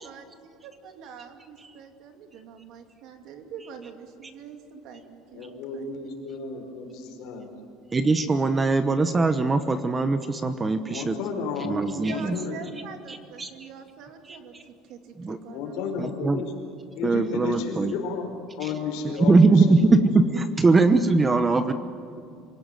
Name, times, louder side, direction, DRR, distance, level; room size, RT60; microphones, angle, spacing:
voice 1, 0.6-5.8 11.9-14.5 14.9-15.7 16.2-16.3, right 6 dB, 55° right, 5 dB, 2.7 m, -43 dB
voice 2, 5.3-7.5 10.9-12.6 15.5-16.5 17.0-18.3 18.6-19.9, left 5 dB, 70° left, 3 dB, 5.1 m, -33 dB
voice 3, 7.9-11.2 11.6-12.4 13.1-13.7 14.3-14.6 15.2-15.4 16.0-16.4 17.0-17.9 18.6-18.7 19.0-21.7, right 3 dB, 15° right, 10 dB, 0.9 m, -21 dB
27.0 x 18.0 x 9.2 m, 2.5 s
cardioid pair, 155°, 0 cm